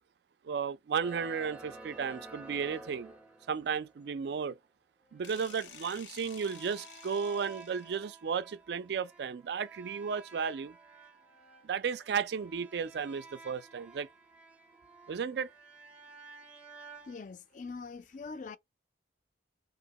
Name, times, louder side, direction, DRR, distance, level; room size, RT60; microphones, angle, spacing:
voice 1, 0.4-3.1 3.5-4.6 5.1-10.8 11.6-14.1 15.1-15.5, right 6 dB, 65° right, 0.3 m, -34 dB
sound 1, 1.0-4.2 5.1-17.2, right 3 dB, 5° right, 0.5 m, -52 dB
sound 2, 5.2-8.2, left 7 dB, 85° left, 0.7 m, -52 dB
voice 2, 17.1-18.6, left 4 dB, 45° left, 0.4 m, -43 dB
2.8 x 2.7 x 4.0 m
head